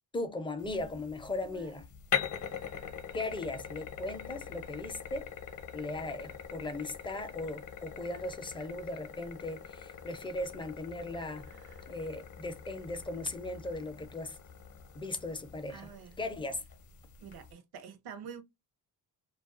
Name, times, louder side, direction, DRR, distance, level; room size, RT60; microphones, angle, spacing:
voice 1, 0.1-1.9 3.1-5.3 5.7-11.5 11.9-14.4 14.9-15.9 16.2-16.6, left 2 dB, 15° left, 0.5 m, -38 dB
sound 1, 0.6-17.5, left 8 dB, 50° left, 0.7 m, -42 dB
voice 2, 1.4-1.8 11.5-12.0 15.7-16.2 17.2-18.4, right 6 dB, 70° right, 0.7 m, -48 dB
2.3 x 2.3 x 2.4 m
cardioid pair, 95°, 39 cm